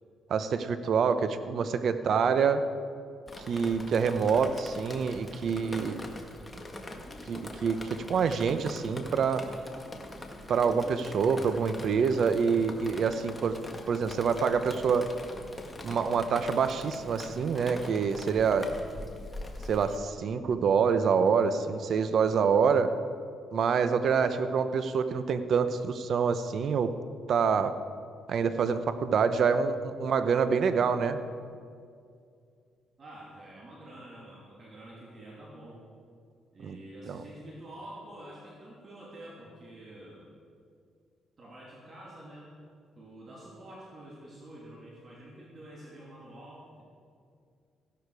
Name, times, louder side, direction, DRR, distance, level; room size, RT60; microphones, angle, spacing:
voice 1, 0.3-2.7 3.5-6.0 7.3-9.4 10.5-13.6 13.9-15.1 15.8-18.7 19.7-22.9 23.5-26.9 27.3-27.7 28.3-31.2 36.6-36.8 37.1-37.2, right 6 dB, 60° right, 11 dB, 0.9 m, -26 dB
Drip, 3.3-20.0, left 1 dB, 15° left, 1.7 m, -43 dB
voice 2, 33.0-35.8 36.5-40.3 41.4-42.6 43.0-46.8, right 1 dB, 40° right, -4 dB, 3.0 m, -47 dB
15.5 x 11.5 x 4.9 m, 2.3 s
cardioid pair, 90°, 0 cm